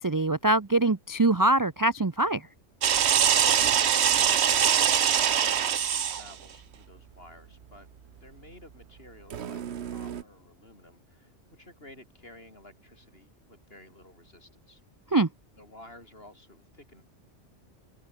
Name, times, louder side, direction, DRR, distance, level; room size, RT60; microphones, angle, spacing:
voice 1, 0.0-2.5 15.1-15.3, right 2 dB, 20° right, 0.6 m, -23 dB
sound 1, 2.8-6.3 9.3-10.2, right 8 dB, 65° right, 1.1 m, -23 dB
voice 2, 4.0-7.9 8.1-14.8 15.6-17.0, left 1 dB, 50° left, 7.1 m, -52 dB
open air
omnidirectional pair, 1.2 m